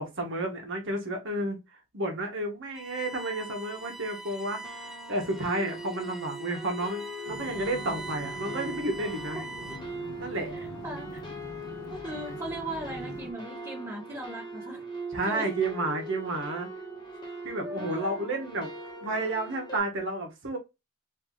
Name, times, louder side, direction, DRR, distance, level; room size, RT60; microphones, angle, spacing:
voice 1, 0.0-1.6 1.9-9.4 10.2-10.5 15.1-16.7 17.4-18.7 19.0-20.6, right 2 dB, 60° right, 1.6 m, -31 dB
Bowed string instrument, 2.7-10.0, right 2 dB, ahead, 0.3 m, -43 dB
sound 1, 3.4-3.5 3.8-4.2 4.6-19.8, right 2 dB, 20° left, 1.2 m, -41 dB
sound 2, 7.3-13.3, left 2 dB, 90° left, 0.8 m, -44 dB
voice 2, 9.3-9.8 10.5-11.1 11.9-14.8 15.2-15.5 17.6-18.2, right 1 dB, 20° right, 1.8 m, -38 dB
4.7 x 3.2 x 2.8 m
head